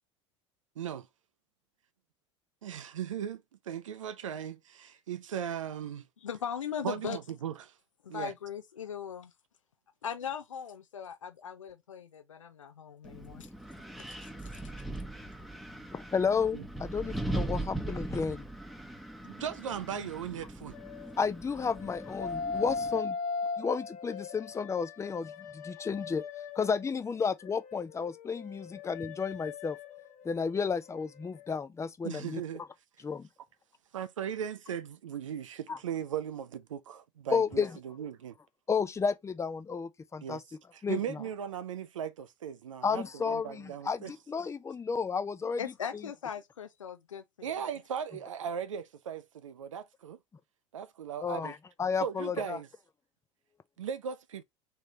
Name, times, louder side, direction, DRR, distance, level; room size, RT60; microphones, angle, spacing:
voice 1, 0.8-1.1 2.6-6.1 6.8-7.7 8.1-8.3 16.5-16.6 19.2-20.8 32.0-32.6 33.9-38.3 40.2-40.4 40.9-44.1 47.4-50.2 50.7-51.5 52.0-52.7 53.8-54.4, right 8 dB, 85° right, 0.5 m, -38 dB
voice 2, 6.2-7.2 8.0-9.3 10.0-13.5 45.6-47.6, left 8 dB, 90° left, 0.6 m, -39 dB
Wind, 13.1-23.0, right 1 dB, ahead, 1.0 m, -40 dB
voice 3, 15.9-18.5 21.2-23.2 23.6-29.8 30.2-32.7 33.0-33.3 35.7-35.8 37.3-37.8 38.7-40.4 40.8-41.2 42.8-46.1 51.2-52.6, left 5 dB, 20° left, 0.6 m, -32 dB
sound 1, 20.7-21.2 21.8-26.9 27.4-31.0 31.2-31.5, left 4 dB, 50° left, 1.4 m, -39 dB
3.3 x 3.2 x 3.8 m
hypercardioid pair, 75°, 16 cm